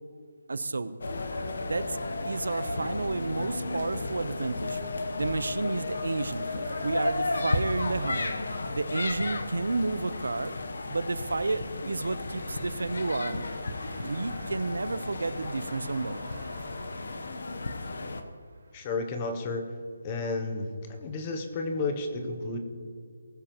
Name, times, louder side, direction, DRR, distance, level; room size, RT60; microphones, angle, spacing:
voice 1, 0.5-1.0 1.7-2.0 2.2-4.8 5.2-6.5 6.8-8.3 8.8-10.6 10.9-13.4 14.0-16.2, right 3 dB, 85° right, 14 dB, 0.7 m, -31 dB
sound 1, 1.0-18.2, left 2 dB, 55° left, 0.9 m, -34 dB
sound 2, 3.4-15.5, left 1 dB, 80° left, 1.4 m, -50 dB
sound 3, 3.9-19.2, right 2 dB, 70° right, 3.2 m, -52 dB
voice 2, 18.7-19.7 20.0-22.6, left 3 dB, 15° left, 6 dB, 0.7 m, -32 dB
19.5 x 10.0 x 3.0 m, 2.1 s
hypercardioid pair, 180°, 0 cm